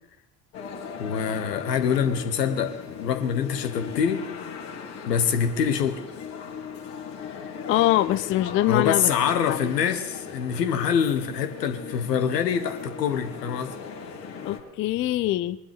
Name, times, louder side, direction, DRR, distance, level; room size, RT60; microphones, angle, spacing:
sound 1, 0.5-14.6, left 6 dB, 50° left, 2.9 m, -38 dB
voice 1, 1.0-4.3 5.1-6.0 8.7-13.7, left 7 dB, 75° left, 8 dB, 1.2 m, -25 dB
voice 2, 7.7-9.1 9.5-9.7 14.4-15.6, left 15 dB, 30° left, 14 dB, 0.4 m, -23 dB
22.0 x 11.5 x 3.4 m, 0.97 s
figure-of-eight pair, 60°, 49 cm